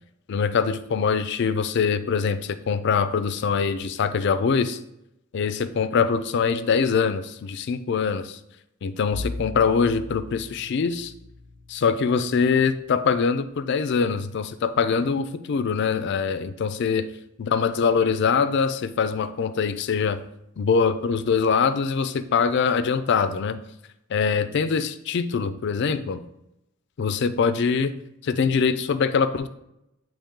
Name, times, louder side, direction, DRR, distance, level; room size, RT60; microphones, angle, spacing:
voice 1, 0.3-4.8 5.3-8.4 8.8-11.1 11.7-17.1 17.4-20.2 20.6-23.6 24.1-26.2 27.0-27.9 28.2-29.5, left 5 dB, 55° left, 13 dB, 0.3 m, -23 dB
Bowed string instrument, 9.1-14.2, left 2 dB, 10° right, 0.5 m, -40 dB
8.4 x 3.0 x 3.7 m, 0.84 s
head